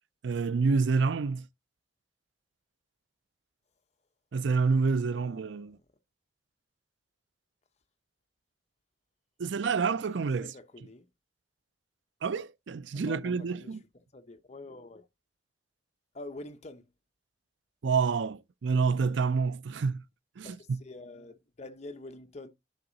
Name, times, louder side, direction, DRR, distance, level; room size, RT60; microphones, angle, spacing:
voice 1, 0.2-1.5 4.3-5.8 9.4-10.5 12.2-13.8 17.8-20.0 20.4-20.8, right 4 dB, 80° right, 0.5 m, -28 dB
voice 2, 5.1-5.8 10.4-11.1 12.9-13.7 14.1-15.1 16.1-16.9 20.4-22.5, left 2 dB, 40° left, 1.0 m, -46 dB
10.5 x 4.8 x 4.1 m
head